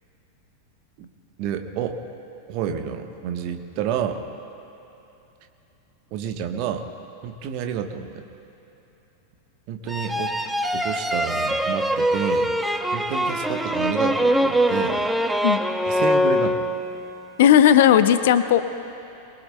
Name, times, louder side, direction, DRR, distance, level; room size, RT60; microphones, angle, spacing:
voice 1, 1.4-2.0 2.5-4.2 6.1-6.9 7.2-8.2 9.7-10.3 10.7-12.5 12.9-15.0 15.9-16.6, right 8 dB, 45° right, 6 dB, 1.1 m, -29 dB
sound 1, 9.9-17.1, equal, 5° right, 0.7 m, -23 dB
voice 2, 17.4-18.6, left 10 dB, 55° left, 12 dB, 0.6 m, -15 dB
23.0 x 22.5 x 2.2 m, 3.0 s
figure-of-eight pair, 90°, 0 cm